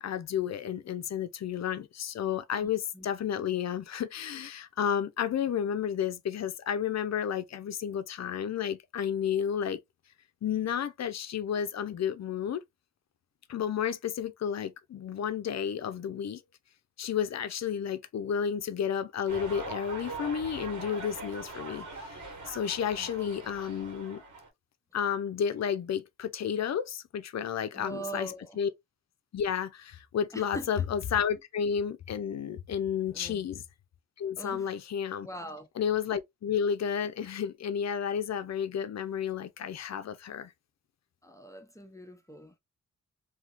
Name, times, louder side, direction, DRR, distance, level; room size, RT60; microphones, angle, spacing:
voice 1, 0.0-9.8 10.4-12.6 13.5-16.4 17.0-24.2 24.9-28.7 29.3-33.6 34.2-35.3 35.8-40.5, left 8 dB, 65° left, 0.6 m, -32 dB
sound 1, 19.3-24.5, right 2 dB, 85° right, 1.5 m, -42 dB
voice 2, 27.7-28.6 30.3-30.7 33.1-33.4 34.4-34.7 35.2-35.7 41.2-42.6, right 1 dB, 10° left, 0.8 m, -42 dB
3.6 x 2.8 x 2.5 m
cardioid pair, 90°, 29 cm